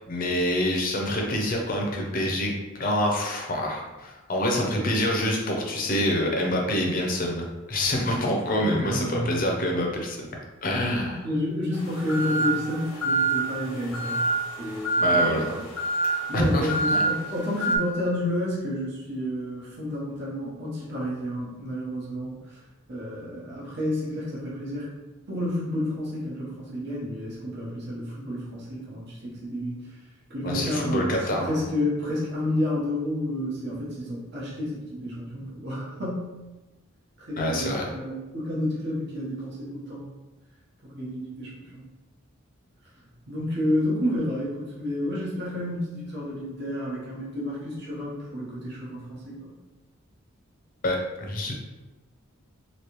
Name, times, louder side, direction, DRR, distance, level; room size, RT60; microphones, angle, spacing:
voice 1, 0.1-10.3 10.6-11.2 15.0-15.5 16.3-17.0 30.4-31.7 37.4-37.9 50.8-51.6, left 1 dB, 40° left, 0 dB, 0.6 m, -26 dB
voice 2, 8.5-9.4 10.9-14.2 14.6-15.6 16.0-22.4 22.9-24.9 25.3-29.7 30.3-36.3 37.2-40.1 40.8-41.8 43.3-49.5, left 1 dB, 55° right, -6 dB, 1.0 m, -30 dB
sound 1, 11.7-17.8, right 3 dB, 80° left, 0.8 m, -27 dB
3.1 x 2.7 x 3.0 m, 1.1 s
head